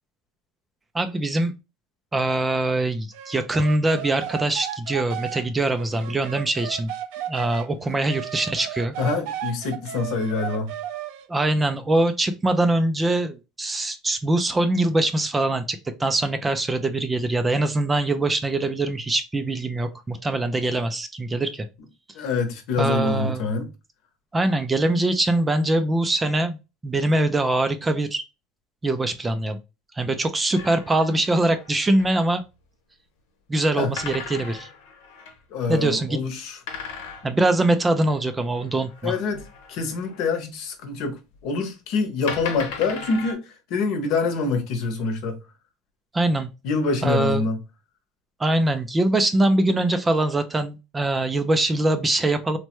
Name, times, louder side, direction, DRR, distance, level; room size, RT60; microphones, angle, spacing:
voice 1, 0.9-1.5 2.1-6.9 7.3-8.9 11.3-21.7 22.8-23.4 24.3-28.2 28.8-29.6 30.0-32.4 33.5-34.7 35.7-36.2 37.2-39.1 46.1-46.5 47.0-47.4 48.4-52.6, right 2 dB, 15° right, 0.3 m, -23 dB
sound 1, 3.1-7.7 8.1-11.3, right 10 dB, 75° right, 0.4 m, -34 dB
voice 2, 9.0-10.7 22.1-23.7 33.8-33.9 35.5-36.6 39.0-39.4 39.7-43.4 43.7-45.4 46.6-47.6, left 4 dB, 60° left, 0.9 m, -25 dB
sound 2, 30.5-32.2 34.0-35.4 36.7-40.3 41.4-41.5 42.3-43.3, left 5 dB, 85° left, 1.0 m, -38 dB
3.1 x 2.1 x 3.0 m
supercardioid pair, 130°, 0 cm